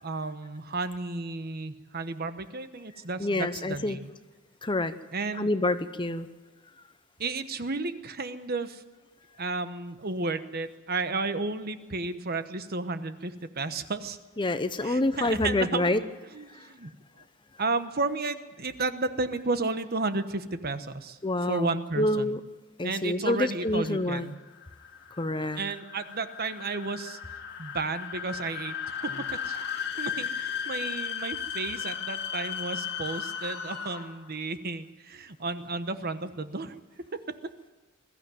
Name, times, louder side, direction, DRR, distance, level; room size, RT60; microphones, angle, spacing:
voice 1, 0.0-4.1 5.1-5.5 7.2-8.8 9.4-14.2 14.8-16.0 16.3-16.9 17.6-21.2 21.5-22.4 22.8-24.3 25.6-27.2 27.6-36.8, right 3 dB, 45° right, 10 dB, 1.1 m, -33 dB
voice 2, 3.2-4.0 4.6-4.9 5.4-6.3 14.4-16.0 16.5-16.7 21.2-22.4 22.8-24.3 25.2-25.6, left 2 dB, 25° left, 11 dB, 0.8 m, -27 dB
sound 1, 23.6-34.3, left 8 dB, 55° left, 2.1 m, -36 dB
21.5 x 14.0 x 9.3 m, 1.2 s
head